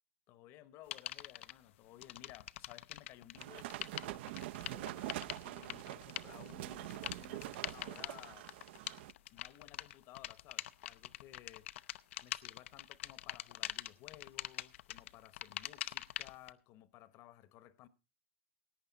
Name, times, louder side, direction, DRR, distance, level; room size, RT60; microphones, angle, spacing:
voice 1, 0.3-3.9 4.6-8.8 9.3-11.8 12.2-17.9, left 13 dB, 40° left, 1.0 m, -57 dB
sound 1, 0.9-1.5 2.0-16.5, left 14 dB, 70° left, 0.6 m, -44 dB
sound 2, 3.4-9.1, right 15 dB, 60° right, 0.5 m, -45 dB
17.5 x 8.9 x 4.0 m
supercardioid pair, 140°, 7 cm